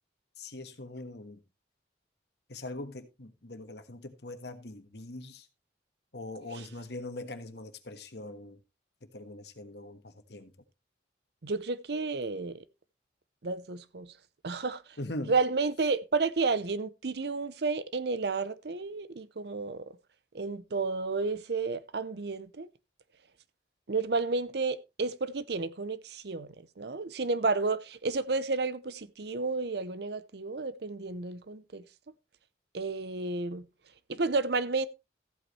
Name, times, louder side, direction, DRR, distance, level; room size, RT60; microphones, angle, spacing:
voice 1, 0.4-1.4 2.5-5.5 6.1-8.6 9.1-10.5 15.0-15.3, left 2 dB, 65° left, 1.4 m, -42 dB
voice 2, 11.4-12.6 13.4-14.1 14.4-14.8 15.3-19.9 20.3-22.7 23.9-31.8 32.7-33.7 34.1-34.9, right 3 dB, 60° right, 0.7 m, -31 dB
14.5 x 8.3 x 3.2 m
head